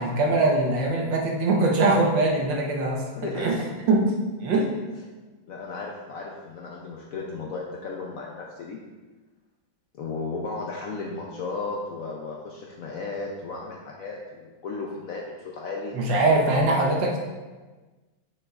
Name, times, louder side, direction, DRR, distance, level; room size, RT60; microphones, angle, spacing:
voice 1, 0.0-3.0 3.3-3.6 3.9-4.1 4.4-4.7 15.9-17.2, right 2 dB, 70° right, 0 dB, 1.6 m, -22 dB
voice 2, 3.1-3.5 5.5-8.8 9.9-15.9, left 3 dB, 65° left, -1 dB, 0.8 m, -34 dB
6.8 x 6.3 x 2.4 m, 1.3 s
omnidirectional pair, 2.1 m